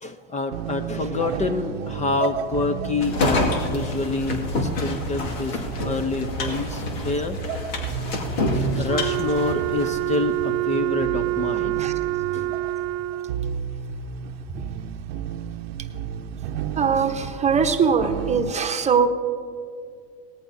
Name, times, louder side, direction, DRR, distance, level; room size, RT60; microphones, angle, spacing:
voice 1, 0.0-7.4 8.8-11.9 12.3-12.5, left 3 dB, 25° left, 9 dB, 0.6 m, -27 dB
sound 1, 0.5-18.5, right 8 dB, 85° right, 0.7 m, -33 dB
sound 2, 3.0-10.2, left 1 dB, 75° left, 2.1 m, -27 dB
Wind instrument woodwind instrument, 8.9-13.5, right 16 dB, 50° right, 0.4 m, -26 dB
voice 2, 16.8-19.1, right 6 dB, 20° right, 6 dB, 0.9 m, -21 dB
19.0 x 14.0 x 2.7 m, 2.3 s
supercardioid pair, 110°, 30 cm